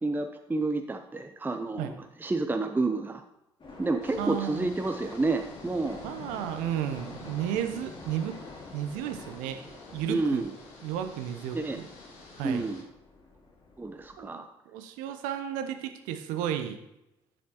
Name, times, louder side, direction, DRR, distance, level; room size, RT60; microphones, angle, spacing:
voice 1, 0.0-1.9 2.2-3.2 3.8-6.0 10.1-10.5 11.5-11.8 12.4-12.9 13.8-14.5, right 3 dB, 15° right, 6 dB, 0.7 m, -29 dB
sound 1, 3.6-14.2, left 2 dB, 35° left, 2.2 m, -47 dB
sound 2, 4.0-12.8, left 4 dB, 65° left, 1.6 m, -50 dB
voice 2, 4.2-4.7 6.0-8.4 8.7-9.6 9.9-10.5 10.8-11.9 12.4-12.7 14.2-14.4 14.7-16.8, right 10 dB, 65° right, 7 dB, 0.9 m, -33 dB
10.5 x 6.3 x 3.0 m, 0.87 s
figure-of-eight pair, 50°, 14 cm